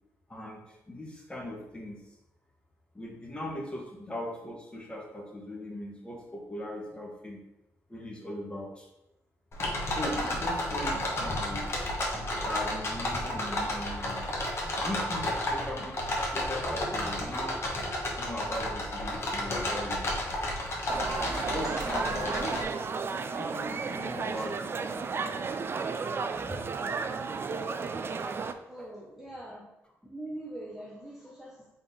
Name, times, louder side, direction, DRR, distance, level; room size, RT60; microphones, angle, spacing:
voice 1, 0.3-2.0 2.9-7.4 7.9-8.9 9.9-11.6 12.4-14.2 14.8-17.6 18.2-20.0 21.5-22.5 23.3-25.7 26.5-26.6 28.5-28.9, left 1 dB, 15° left, -1 dB, 1.2 m, -39 dB
sound 1, 9.5-22.6, left 1 dB, 45° left, 1.2 m, -32 dB
sound 2, 20.9-28.5, right 5 dB, 40° right, 0.3 m, -33 dB
voice 2, 21.4-21.7 24.4-24.5 28.6-29.6 30.1-31.7, right 1 dB, 5° right, -5 dB, 0.8 m, -43 dB
3.8 x 2.8 x 3.9 m, 0.93 s
cardioid pair, 65°, 6 cm